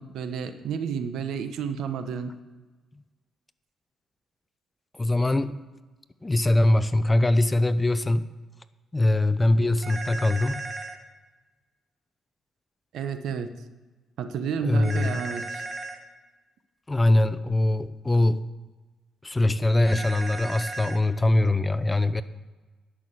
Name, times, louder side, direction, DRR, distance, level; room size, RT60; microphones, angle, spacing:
voice 1, 0.0-2.3 12.9-13.5 14.2-15.6, right 7 dB, 75° right, 9 dB, 0.9 m, -31 dB
voice 2, 5.0-5.6 6.2-8.3 8.9-10.7 14.6-15.2 16.9-18.4 19.2-22.2, left 2 dB, 15° left, 13 dB, 0.6 m, -22 dB
sound 1, 9.8-11.0 14.8-16.0 19.8-21.0, right 2 dB, 25° right, 1.5 m, -35 dB
11.0 x 6.2 x 8.1 m, 1.3 s
cardioid pair, 90°, 0 cm